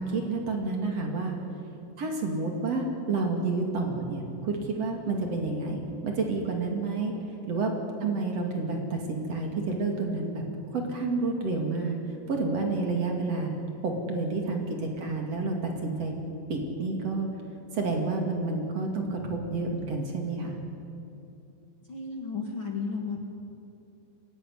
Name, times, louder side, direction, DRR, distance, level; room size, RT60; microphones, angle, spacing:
voice 1, 0.0-1.4 2.0-7.1 7.5-7.7 8.0-10.4 10.7-12.0 12.3-13.5 13.8-16.1 16.5-17.3 17.7-20.6, right 3 dB, 50° right, 2 dB, 3.4 m, -29 dB
voice 2, 21.9-23.2, left 4 dB, 45° left, 2 dB, 2.1 m, -33 dB
24.0 x 17.0 x 9.9 m, 2.7 s
omnidirectional pair, 3.9 m